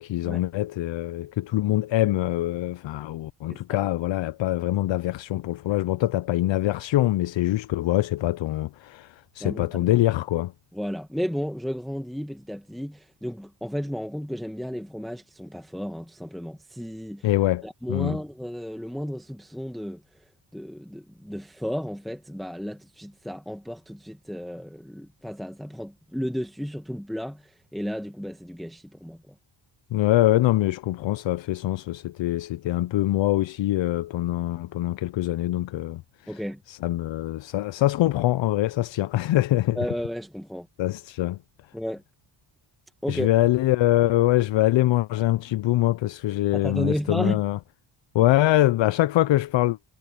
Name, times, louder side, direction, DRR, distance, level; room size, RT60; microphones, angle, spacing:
voice 1, 0.0-10.5 17.2-18.2 29.9-36.4 36.7-39.9 40.8-41.4 43.1-47.6 48.1-49.8, left 15 dB, 70° left, 0.6 m, -24 dB
voice 2, 10.7-17.3 17.6-20.0 20.5-29.3 36.3-36.6 39.7-40.7 41.7-42.0 43.0-43.3 46.5-47.4, equal, ahead, 1.2 m, -33 dB
wide cardioid pair, 130°, 47 cm